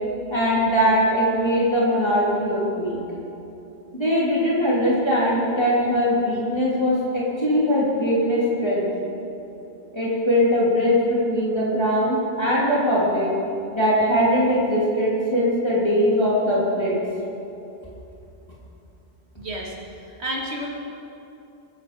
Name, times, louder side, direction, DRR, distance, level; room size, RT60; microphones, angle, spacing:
voice 1, 0.3-3.0 3.9-8.9 9.9-13.3 13.7-17.0, equal, 25° left, -8 dB, 3.0 m, -21 dB
voice 2, 19.4-19.7 20.0-20.7, right 1 dB, 75° right, -2 dB, 2.7 m, -31 dB
22.5 x 8.9 x 5.2 m, 2.9 s
omnidirectional pair, 1.1 m